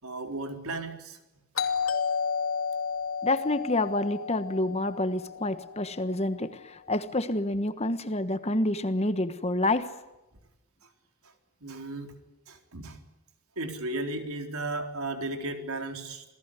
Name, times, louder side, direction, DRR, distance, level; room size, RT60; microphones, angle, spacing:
voice 1, 0.0-1.2 11.6-12.1 12.5-13.0 13.6-16.2, right 2 dB, 75° right, 5 dB, 4.0 m, -35 dB
Doorbell, 1.6-6.2, left 6 dB, 65° left, 2.8 m, -32 dB
voice 2, 3.2-9.9, left 2 dB, 30° left, 11 dB, 1.3 m, -28 dB
28.5 x 18.0 x 9.8 m, 1.0 s
head